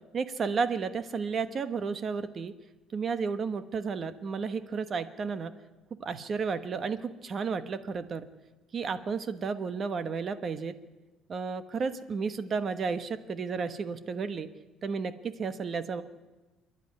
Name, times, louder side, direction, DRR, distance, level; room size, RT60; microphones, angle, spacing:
voice 1, 0.1-2.5 2.9-5.5 6.0-8.3 8.7-10.7 11.3-14.5 14.8-16.0, right 5 dB, 35° right, 11 dB, 1.2 m, -32 dB
26.0 x 11.0 x 9.5 m, 1.2 s
cardioid pair, 140°, 0 cm